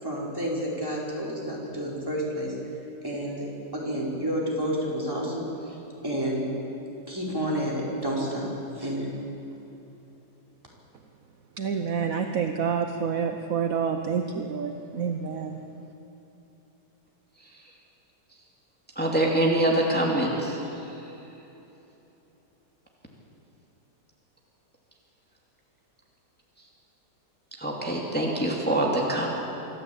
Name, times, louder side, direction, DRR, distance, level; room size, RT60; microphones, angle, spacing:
voice 1, 0.0-2.5 3.0-3.5 3.7-5.8 6.0-6.5 7.1-8.5 8.7-9.1, equal, 10° right, -4 dB, 4.6 m, -30 dB
voice 2, 11.6-15.6, right 6 dB, 60° right, 5 dB, 1.2 m, -28 dB
voice 3, 19.0-20.9 27.6-29.3, right 1 dB, 5° left, -2 dB, 2.6 m, -25 dB
25.5 x 13.5 x 8.6 m, 3.0 s
omnidirectional pair, 1.8 m